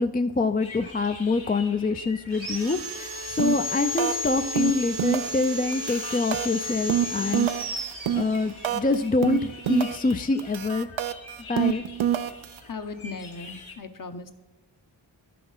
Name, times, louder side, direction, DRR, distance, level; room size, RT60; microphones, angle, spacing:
voice 1, 0.0-2.8 3.3-7.5 8.1-10.9 11.5-11.8, left 3 dB, 20° left, 7 dB, 0.4 m, -25 dB
sound 1, 0.6-13.8, left 3 dB, 85° left, 1.4 m, -46 dB
Sawing, 2.3-8.8, left 1 dB, 55° right, 1.0 m, -33 dB
sound 2, 3.4-3.7 4.0-4.3 4.6-5.4 5.7-8.9 9.2-10.1 10.4-12.6, right 10 dB, 75° right, 0.6 m, -26 dB
voice 2, 12.6-14.3, left 4 dB, 45° left, 8 dB, 0.9 m, -37 dB
11.0 x 5.9 x 5.5 m, 1.1 s
wide cardioid pair, 65°, 47 cm